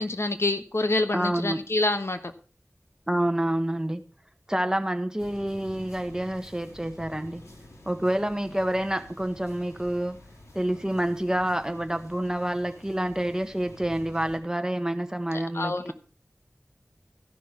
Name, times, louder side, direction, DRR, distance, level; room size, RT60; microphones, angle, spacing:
voice 1, 0.0-2.2 15.3-15.9, left 2 dB, 60° left, 9 dB, 1.1 m, -27 dB
voice 2, 1.1-1.6 3.1-4.0 4.5-7.4 7.9-10.1 10.5-15.9, right 1 dB, 15° right, 8 dB, 1.3 m, -28 dB
sound 1, 5.2-14.4, left 1 dB, 80° left, 3.1 m, -48 dB
14.0 x 6.1 x 5.8 m, 0.39 s
wide cardioid pair, 50°, 5 cm